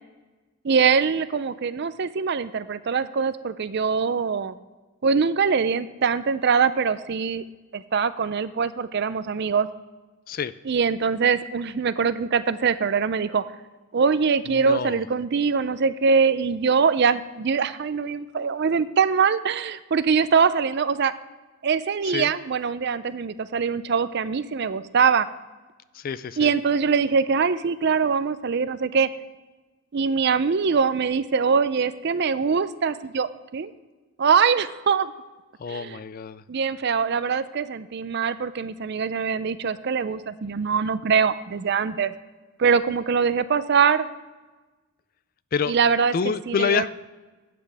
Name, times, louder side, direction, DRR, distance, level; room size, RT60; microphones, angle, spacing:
voice 1, 0.6-4.5 5.0-7.4 7.7-9.7 10.7-13.4 13.9-21.1 21.6-25.3 26.4-29.1 29.9-33.7 34.2-35.1 35.7-36.0 36.5-42.1 42.6-44.1 45.7-46.1 46.5-46.8, right 5 dB, 50° right, 14 dB, 0.4 m, -23 dB
voice 2, 14.5-15.0 22.0-22.3 25.9-26.5 35.6-36.4 45.5-45.7 46.1-46.9, left 6 dB, 40° left, 15 dB, 0.3 m, -27 dB
12.5 x 8.7 x 3.4 m, 1.2 s
head